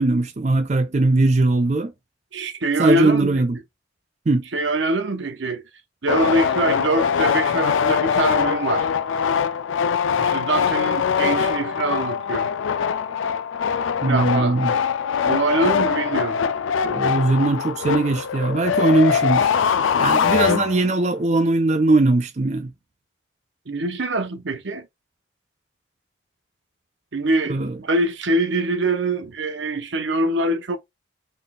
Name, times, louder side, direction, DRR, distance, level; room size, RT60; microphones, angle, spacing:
voice 1, 0.0-1.9 2.8-3.6 4.3-4.4 14.0-14.7 16.8-19.5 20.0-22.7 27.5-27.8, right 2 dB, 35° right, 0.4 m, -20 dB
voice 2, 2.3-3.4 4.5-5.6 6.0-8.9 10.2-12.5 14.0-14.6 15.2-16.4 23.7-24.9 27.1-30.8, right 2 dB, 75° right, 0.8 m, -24 dB
sound 1, 6.1-21.1, left 7 dB, 90° left, 0.4 m, -22 dB
4.0 x 2.3 x 3.6 m
head